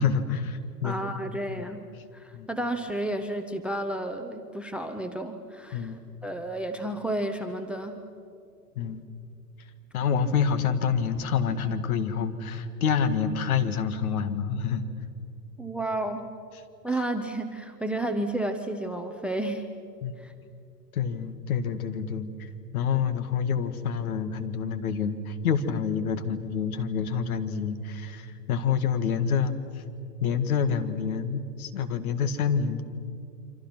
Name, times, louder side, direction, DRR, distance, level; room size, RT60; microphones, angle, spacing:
voice 1, 0.0-1.0 1.6-1.7 2.3-2.5 5.7-6.0 8.8-9.0 9.9-14.9 20.0-20.1 20.9-29.8 30.2-32.8, left 6 dB, 60° left, 9 dB, 2.0 m, -27 dB
voice 2, 0.8-1.8 2.1-8.0 15.6-16.2 16.8-19.7 20.2-20.3, right 1 dB, ahead, 7 dB, 0.6 m, -31 dB
28.0 x 25.5 x 6.1 m, 2.5 s
hypercardioid pair, 115°, 49 cm